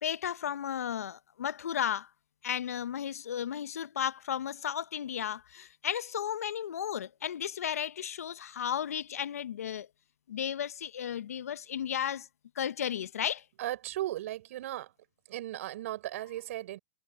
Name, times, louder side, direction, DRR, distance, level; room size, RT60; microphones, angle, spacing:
voice 1, 0.0-2.1 2.4-9.9 10.3-12.3 12.6-13.4, left 9 dB, 80° left, 0.9 m, -34 dB
voice 2, 13.6-14.9 15.3-16.8, right 14 dB, 65° right, 6.3 m, -36 dB
hypercardioid pair, 120°, 8 cm